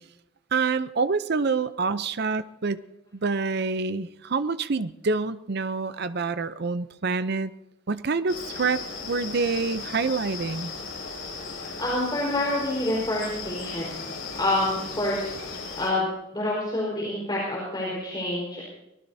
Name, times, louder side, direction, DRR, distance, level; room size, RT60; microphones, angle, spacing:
voice 1, 0.5-2.8 3.1-7.5 7.9-10.7, right 4 dB, 55° right, 13 dB, 0.6 m, -27 dB
sound 1, 8.3-15.9, left 4 dB, 80° left, 6.9 m, -36 dB
voice 2, 11.6-14.0 14.4-15.5 15.8-16.1 16.3-18.6, left 1 dB, 20° left, -5 dB, 4.5 m, -27 dB
23.5 x 19.0 x 2.8 m, 0.92 s
head